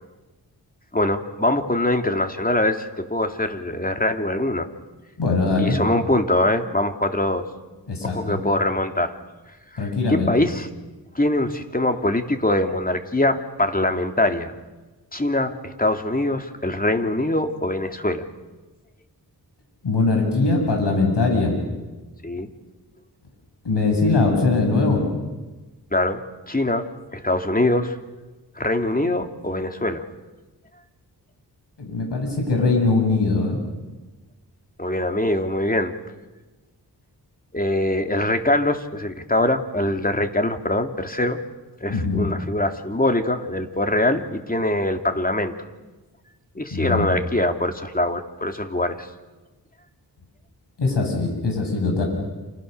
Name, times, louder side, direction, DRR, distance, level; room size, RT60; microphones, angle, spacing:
voice 1, 0.9-4.7 5.6-7.5 8.0-9.2 9.7-10.7 11.1-14.5 15.1-18.2 22.2-22.5 25.9-26.9 27.1-28.0 28.6-30.0 34.8-35.9 37.5-41.4 41.8-45.5 46.5-49.1, left 1 dB, 20° left, 6 dB, 2.9 m, -23 dB
voice 2, 5.2-5.8 7.9-8.4 9.8-10.3 19.8-21.6 23.6-25.0 31.8-33.6 41.9-42.3 46.7-47.1 50.8-52.0, left 3 dB, 85° left, 1 dB, 7.6 m, -21 dB
29.0 x 28.0 x 6.9 m, 1.2 s
cardioid pair, 55°, 41 cm